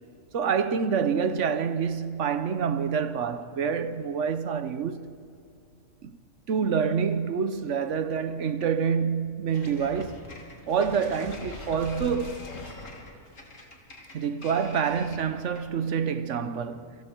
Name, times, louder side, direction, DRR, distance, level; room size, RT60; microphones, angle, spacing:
voice 1, 0.3-5.1 6.0-6.2 6.5-10.3 10.7-12.4 14.1-17.0, right 6 dB, 60° right, 1.1 m, -27 dB
sound 1, 9.5-15.8, left 2 dB, 65° left, 3.0 m, -43 dB
28.0 x 25.5 x 4.5 m
omnidirectional pair, 1.4 m